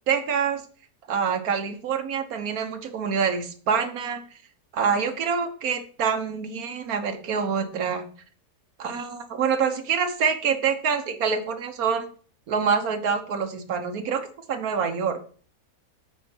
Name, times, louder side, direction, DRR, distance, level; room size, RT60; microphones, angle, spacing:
voice 1, 0.1-0.6 1.1-4.2 4.7-8.1 8.8-12.1 12.5-14.2 14.5-15.2, right 6 dB, 85° right, 7 dB, 1.5 m, -26 dB
8.8 x 4.6 x 4.4 m, 0.43 s
omnidirectional pair, 1.5 m